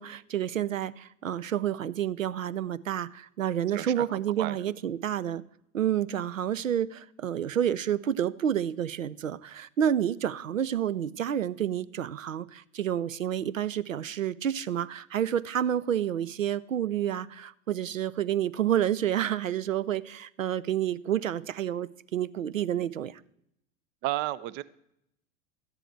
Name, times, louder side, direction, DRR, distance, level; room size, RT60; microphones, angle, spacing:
voice 1, 0.0-5.4 5.7-23.2, right 10 dB, 80° right, 0.5 m, -29 dB
voice 2, 3.7-4.0 4.4-4.6 24.0-24.6, right 16 dB, 30° right, 0.4 m, -31 dB
13.0 x 9.8 x 4.5 m
figure-of-eight pair, 85°, 39 cm